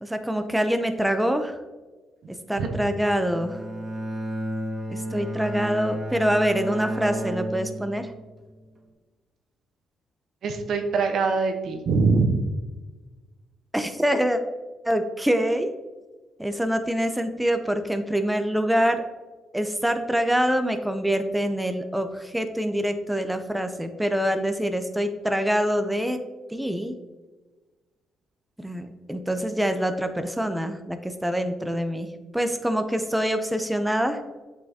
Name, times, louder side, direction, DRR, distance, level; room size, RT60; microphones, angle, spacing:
voice 1, 0.0-1.5 2.3-3.6 4.9-8.1 13.7-14.4 14.8-15.7 16.4-19.0 19.5-26.2 26.5-27.0 28.6-32.1 32.3-34.2, equal, 5° right, 7 dB, 0.5 m, -25 dB
Bowed string instrument, 3.2-8.4, right 1 dB, 25° right, 1.4 m, -32 dB
voice 2, 10.4-12.4, right 4 dB, 65° right, 6 dB, 0.9 m, -23 dB
7.9 x 5.6 x 2.8 m, 1.3 s
cardioid pair, 90°, 0 cm